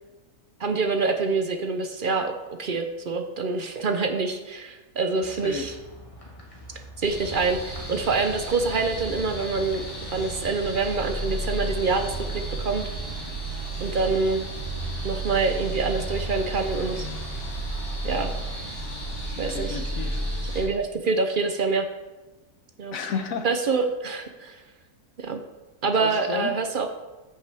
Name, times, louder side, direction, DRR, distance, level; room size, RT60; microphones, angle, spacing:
voice 1, 0.6-2.3 2.6-5.7 7.0-9.8 10.1-12.8 13.8-14.4 15.0-17.1 18.0-18.3 19.4-19.8 20.5-21.9 22.8-22.9 23.4-24.6 25.2-25.4 25.8-26.9, right 4 dB, 55° right, 6 dB, 0.5 m, -26 dB
sound 1, 5.2-13.2, equal, 25° left, 1.2 m, -44 dB
voice 2, 5.4-5.8 19.4-20.6 22.9-23.5 26.0-26.5, left 6 dB, 65° left, 7 dB, 1.1 m, -33 dB
sound 2, 7.0-20.6, right 1 dB, 45° left, 4.0 m, -32 dB
14.0 x 5.6 x 3.4 m, 1.1 s
omnidirectional pair, 1.6 m